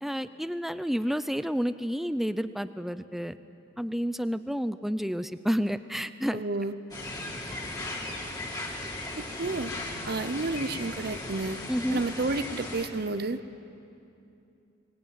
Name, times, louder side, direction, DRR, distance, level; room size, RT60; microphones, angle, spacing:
voice 1, 0.0-3.4 3.8-6.4 11.7-12.0, equal, ahead, 12 dB, 0.5 m, -30 dB
voice 2, 6.3-6.7 9.2-9.7 10.1-11.6 11.9-13.4, right 3 dB, 50° right, 13 dB, 0.7 m, -31 dB
sound 1, 6.9-12.9, left 2 dB, 20° left, 2.7 m, -37 dB
23.0 x 19.0 x 9.2 m, 2.7 s
head